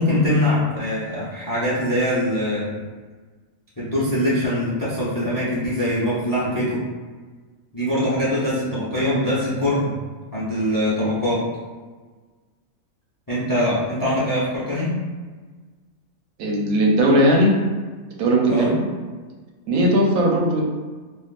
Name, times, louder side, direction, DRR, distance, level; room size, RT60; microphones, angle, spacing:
voice 1, 0.0-2.8 3.8-6.8 7.7-9.9 10.3-11.4 13.3-14.9 18.5-18.7, left 1 dB, 20° left, -8 dB, 0.5 m, -22 dB
voice 2, 16.4-17.5 18.2-18.8 19.7-20.6, right 1 dB, 85° right, -1 dB, 1.1 m, -18 dB
3.5 x 2.4 x 2.4 m, 1.4 s
omnidirectional pair, 1.4 m